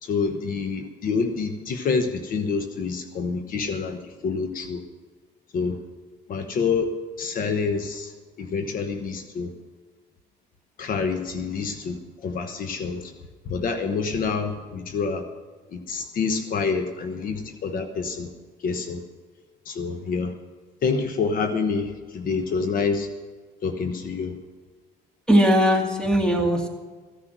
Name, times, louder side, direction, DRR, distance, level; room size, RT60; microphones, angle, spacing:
voice 1, 0.0-4.8 5.5-5.8 6.3-6.9 7.2-8.1 8.4-9.5 10.8-13.1 13.4-15.2 15.7-18.3 18.6-19.0 19.7-20.3 20.8-23.1 23.6-24.4, left 5 dB, 55° left, 7 dB, 1.1 m, -27 dB
voice 2, 25.3-26.7, equal, 5° left, 3 dB, 2.1 m, -19 dB
15.0 x 10.0 x 6.1 m, 1.4 s
cardioid pair, 110°, 17 cm